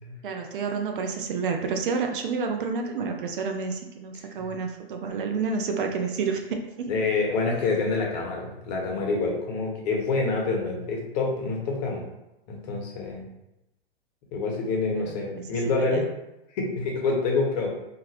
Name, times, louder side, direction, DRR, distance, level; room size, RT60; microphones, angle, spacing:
voice 1, 0.2-6.9 15.1-15.4 15.9-16.1, right 5 dB, 60° right, 4 dB, 0.5 m, -29 dB
voice 2, 6.9-12.0 12.5-13.3 14.3-16.1 16.5-17.7, left 3 dB, 45° left, 0 dB, 0.9 m, -27 dB
2.8 x 2.5 x 2.9 m, 0.91 s
figure-of-eight pair, 110°, 30 cm